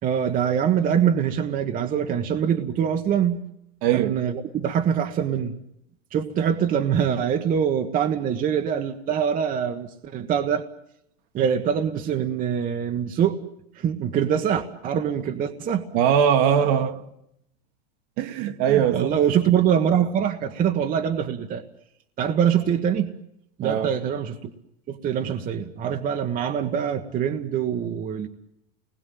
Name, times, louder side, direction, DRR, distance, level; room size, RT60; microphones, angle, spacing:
voice 1, 0.0-3.4 3.9-5.6 6.1-10.6 11.3-13.4 13.8-15.9 18.7-21.6 22.2-23.1 23.6-24.5 24.9-28.3, right 8 dB, 25° right, 1.4 m, -24 dB
voice 2, 3.8-4.2 15.9-17.1 18.2-19.1 23.6-23.9, right 9 dB, 45° right, 1.8 m, -21 dB
28.5 x 20.5 x 9.3 m
supercardioid pair, 145°, 32 cm